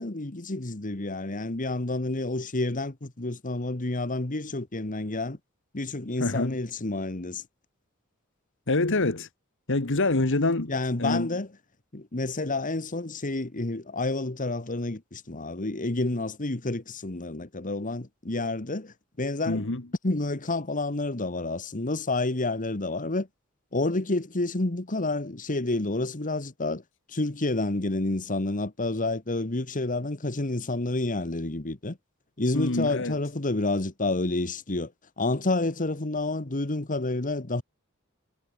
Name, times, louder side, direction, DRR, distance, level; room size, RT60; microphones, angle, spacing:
voice 1, 0.0-5.4 5.7-7.4 10.7-11.5 11.9-19.7 20.0-23.3 23.7-26.8 27.1-32.0 32.4-34.9 35.2-37.6, left 2 dB, 40° left, 1.6 m, -29 dB
voice 2, 6.2-6.6 8.7-9.3 9.7-10.7 11.0-11.4 19.5-19.9 32.5-33.2, left 2 dB, 60° left, 1.7 m, -26 dB
head